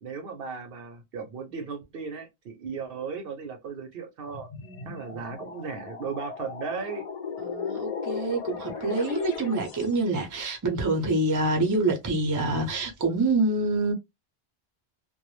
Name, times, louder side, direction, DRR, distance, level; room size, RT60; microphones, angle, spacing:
voice 1, 0.0-4.5 4.8-7.0, right 5 dB, 65° right, 0.7 m, -36 dB
sound 1, 4.2-10.0, left 6 dB, 50° left, 0.4 m, -36 dB
voice 2, 4.6-5.6 7.4-13.9, right 2 dB, 25° right, 0.4 m, -27 dB
2.2 x 2.0 x 3.0 m
omnidirectional pair, 1.1 m